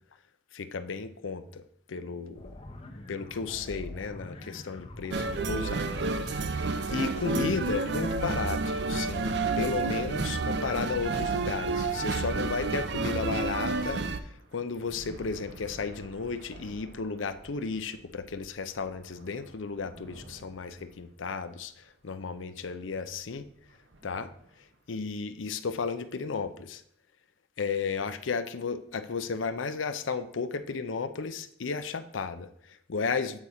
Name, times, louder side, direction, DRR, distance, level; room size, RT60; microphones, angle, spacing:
voice 1, 0.5-1.6 1.9-2.5 3.1-21.7 22.0-23.5 24.0-24.3 24.9-26.8 27.6-33.4, left 5 dB, 85° left, 10 dB, 0.6 m, -34 dB
sound 1, 2.4-8.1, left 1 dB, 30° left, 0.8 m, -46 dB
sound 2, 5.1-14.2, right 3 dB, 60° right, 0.5 m, -30 dB
sound 3, 13.6-24.9, right 1 dB, 75° right, 1.1 m, -53 dB
8.3 x 4.3 x 4.8 m, 0.68 s
head